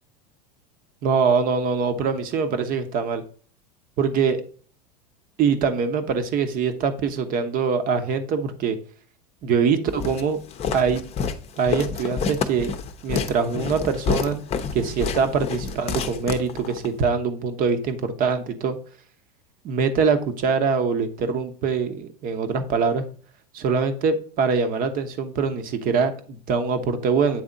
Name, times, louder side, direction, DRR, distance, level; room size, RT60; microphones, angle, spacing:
voice 1, 1.0-3.2 4.0-4.4 5.4-8.8 9.4-10.4 10.7-11.0 11.6-12.7 13.0-14.4 14.7-18.8 19.6-23.1 23.5-27.4, right 5 dB, 45° right, 9 dB, 1.0 m, -23 dB
Walk footsteps, 10.0-16.9, left 6 dB, 30° left, 0.7 m, -28 dB
8.6 x 3.5 x 3.9 m, 0.43 s
hypercardioid pair, 100°, 21 cm